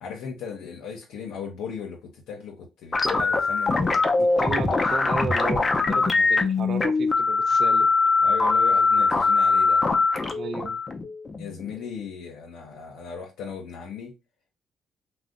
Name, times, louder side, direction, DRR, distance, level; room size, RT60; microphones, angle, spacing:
voice 1, 0.0-4.0 6.2-6.3 6.6-6.7 8.2-9.8 11.4-14.1, left 6 dB, 90° left, 0.6 m, -37 dB
sound 1, 2.9-11.8, left 4 dB, 30° left, 0.5 m, -22 dB
voice 2, 4.2-7.9 10.3-10.8, right 5 dB, 60° right, 0.4 m, -33 dB
2.4 x 2.1 x 3.6 m
cardioid pair, 90°, 0 cm